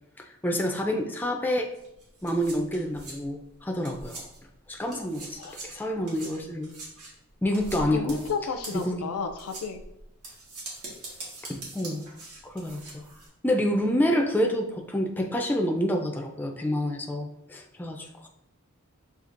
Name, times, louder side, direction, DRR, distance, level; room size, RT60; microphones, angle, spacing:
voice 1, 0.2-1.7 2.2-4.3 4.7-6.7 7.4-8.2 8.7-9.0 11.5-12.0 12.4-12.8 13.4-18.3, equal, 10° left, 2 dB, 0.3 m, -28 dB
sound 1, 1.7-4.5 4.8-13.3, right 2 dB, 80° right, 1.4 m, -43 dB
voice 2, 7.8-9.8, left 5 dB, 75° left, 8 dB, 0.4 m, -32 dB
6.6 x 2.7 x 2.5 m, 0.83 s
head